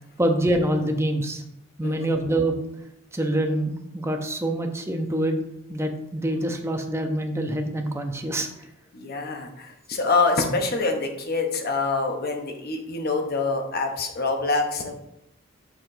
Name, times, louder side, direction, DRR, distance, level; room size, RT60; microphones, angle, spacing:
voice 1, 0.2-1.4 1.8-2.6 3.1-5.4 5.7-8.5, right 1 dB, 10° right, 4 dB, 0.6 m, -25 dB
voice 2, 8.9-14.9, left 3 dB, 45° left, 3 dB, 0.9 m, -25 dB
6.7 x 5.8 x 2.7 m, 0.82 s
head